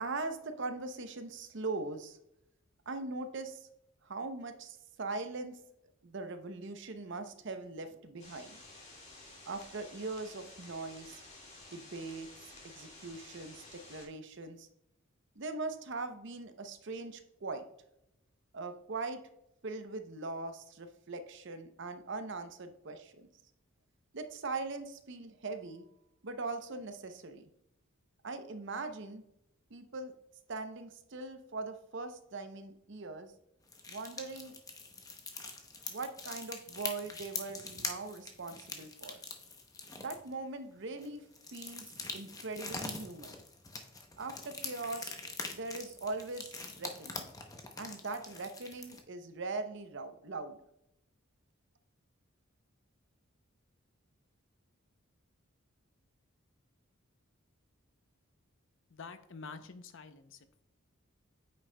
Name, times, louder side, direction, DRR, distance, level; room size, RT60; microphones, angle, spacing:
voice 1, 0.0-2.2 2.9-3.7 4.0-5.6 6.0-8.6 9.5-11.2 11.7-14.7 15.4-17.6 18.5-19.2 19.6-23.3 24.1-25.8 26.2-27.5 28.2-29.2 29.7-30.1 30.5-33.3 33.9-34.6 35.9-39.2 40.0-41.2 41.5-43.4 44.2-45.2 45.5-47.3 47.8-50.6, right 3 dB, 55° right, 8 dB, 0.7 m, -41 dB
sound 1, 8.2-14.1, left 2 dB, 30° left, 1.9 m, -53 dB
sound 2, 33.7-40.3 41.0-49.0, left 3 dB, 15° left, 0.7 m, -44 dB
voice 2, 58.9-60.6, left 4 dB, 60° left, 10 dB, 0.6 m, -48 dB
8.7 x 6.3 x 2.2 m, 0.81 s
head